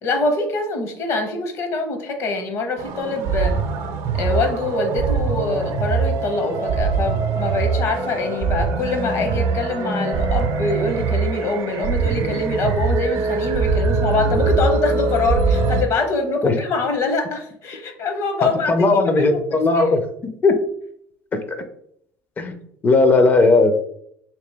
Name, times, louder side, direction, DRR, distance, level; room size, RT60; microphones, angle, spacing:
voice 1, 0.0-3.6 4.1-19.8, left 3 dB, 50° left, 5 dB, 0.9 m, -24 dB
sound 1, 2.8-15.8, right 4 dB, 60° right, 0.6 m, -22 dB
voice 2, 18.7-20.0 20.4-20.6 22.4-22.6 22.8-23.8, left 3 dB, 30° left, 8 dB, 0.5 m, -16 dB
3.3 x 2.9 x 3.3 m, 0.71 s
supercardioid pair, 115°, 6 cm